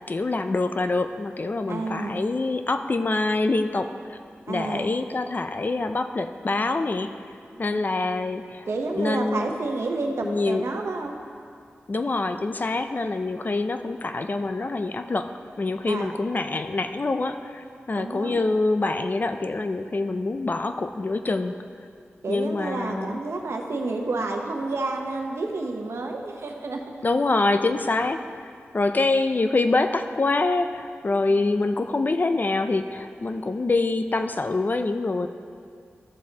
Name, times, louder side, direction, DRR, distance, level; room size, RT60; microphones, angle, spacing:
voice 1, 0.1-4.2 4.5-7.1 7.6-8.7 8.9-9.5 10.2-10.6 11.9-15.3 15.6-21.6 22.3-23.2 27.0-35.3, left 3 dB, 40° left, 8 dB, 0.4 m, -25 dB
voice 2, 1.7-2.2 4.5-5.0 7.5-7.8 8.7-11.1 15.9-16.1 18.0-18.4 22.2-26.8, right 3 dB, 85° right, 2 dB, 0.9 m, -30 dB
13.5 x 7.4 x 2.8 m, 2.3 s
wide cardioid pair, 90°, 4 cm